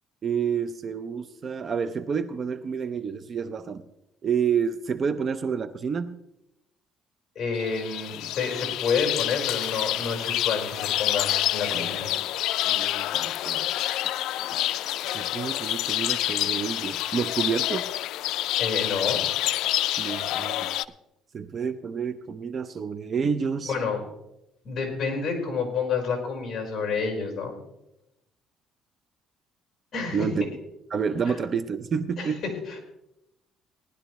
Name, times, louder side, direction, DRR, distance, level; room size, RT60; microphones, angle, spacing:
voice 1, 0.2-3.8 4.2-6.2 11.7-12.0 12.7-13.7 15.1-17.9 20.0-20.7 21.3-23.7 30.1-30.4 30.9-32.4, right 6 dB, 35° right, 12 dB, 0.5 m, -29 dB
voice 2, 7.3-12.1 18.6-19.2 23.7-24.0 24.6-27.5 29.9-30.5 31.3-31.4 32.2-32.8, left 5 dB, 35° left, 2 dB, 4.4 m, -29 dB
sound 1, 7.6-20.9, left 14 dB, 75° left, 0.3 m, -28 dB
19.0 x 11.5 x 3.1 m, 0.87 s
cardioid pair, 150°, 0 cm